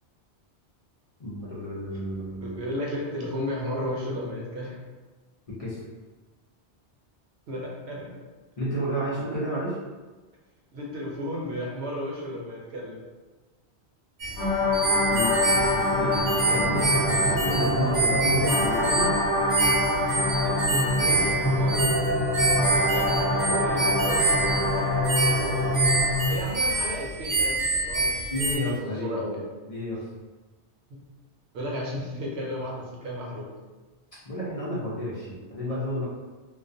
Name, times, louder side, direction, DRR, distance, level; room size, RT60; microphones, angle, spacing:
voice 1, 1.2-2.6 5.6-5.8 8.6-9.7 15.1-19.1 28.3-29.2 29.7-30.0 34.2-36.0, equal, 40° left, -10 dB, 0.5 m, -31 dB
voice 2, 2.4-4.8 7.5-8.2 10.7-13.0 20.4-21.9 22.6-24.9 25.2-25.6 26.3-29.4 30.9-31.0 31.5-33.5, equal, 70° right, -3 dB, 0.9 m, -34 dB
sound 1, 14.2-28.6, right 3 dB, 90° right, 1.1 m, -27 dB
sound 2, 14.4-26.3, left 1 dB, 80° left, 0.9 m, -25 dB
2.3 x 2.3 x 2.5 m, 1.3 s
omnidirectional pair, 1.1 m